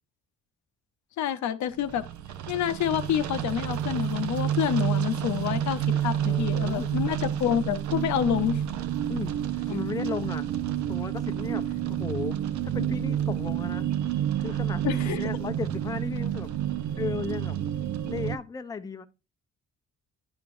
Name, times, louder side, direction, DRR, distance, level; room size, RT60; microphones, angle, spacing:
voice 1, 1.2-2.0 2.5-8.6 9.7-9.8 14.8-15.2, left 10 dB, 70° left, 0.6 m, -28 dB
sound 1, 1.8-18.4, right 10 dB, 70° right, 0.7 m, -29 dB
voice 2, 6.3-6.9 9.1-10.5 10.9-12.4 12.7-13.9 14.4-16.5 17.0-17.6 18.0-19.1, left 5 dB, 10° left, 0.4 m, -35 dB
9.5 x 4.7 x 2.5 m
cardioid pair, 90°, 30 cm